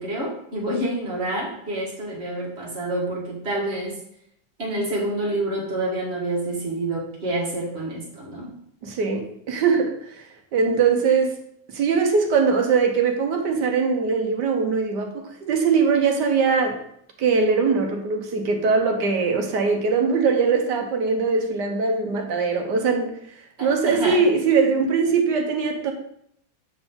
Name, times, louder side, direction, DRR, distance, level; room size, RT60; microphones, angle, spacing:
voice 1, 0.0-4.0 4.6-8.5 23.6-24.2, right 1 dB, 35° right, -4 dB, 1.9 m, -28 dB
voice 2, 8.8-10.3 10.5-11.4 11.7-16.8 17.2-23.2 23.6-25.9, right 5 dB, 70° right, 4 dB, 1.4 m, -21 dB
7.8 x 3.9 x 3.7 m, 0.70 s
omnidirectional pair, 2.0 m